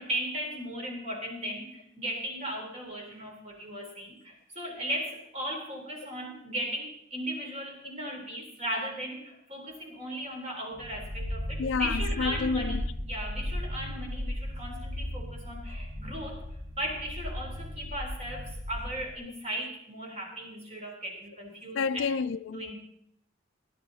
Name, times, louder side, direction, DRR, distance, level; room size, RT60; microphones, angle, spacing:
voice 1, 0.0-16.4 16.7-22.1 22.5-22.7, equal, 35° right, 3.5 m, -37 dB
sound 1, 10.7-19.2, left 1 dB, 85° right, 4.5 m, -36 dB
voice 2, 11.6-12.8 21.7-22.6, left 5 dB, 65° left, 0.4 m, -29 dB
17.5 x 10.5 x 4.1 m
head